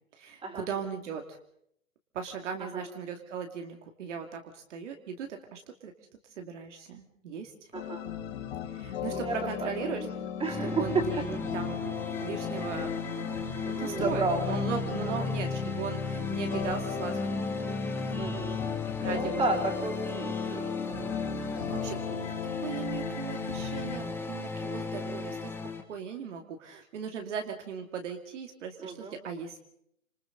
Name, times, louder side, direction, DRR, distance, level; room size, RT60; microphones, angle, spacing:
voice 1, 0.1-1.3 2.1-5.9 6.4-7.5 8.7-10.1 10.4-12.9 13.4-17.4 19.0-19.8 21.4-22.3 22.6-25.5 25.9-29.6, right 6 dB, 60° right, 4 dB, 2.6 m, -38 dB
sound 1, 7.7-24.0, left 9 dB, 55° left, 5.3 m, -37 dB
voice 2, 7.7-8.1 9.1-9.4 9.6-10.1 10.4-11.1 13.8-14.6 18.2-18.6 19.1-21.4 21.7-21.9 28.8-29.1, right 3 dB, 15° right, 0 dB, 4.1 m, -33 dB
sound 2, 10.4-25.8, left 3 dB, 5° left, 1.9 m, -35 dB
26.5 x 26.5 x 4.0 m, 0.71 s
hypercardioid pair, 130°, 41 cm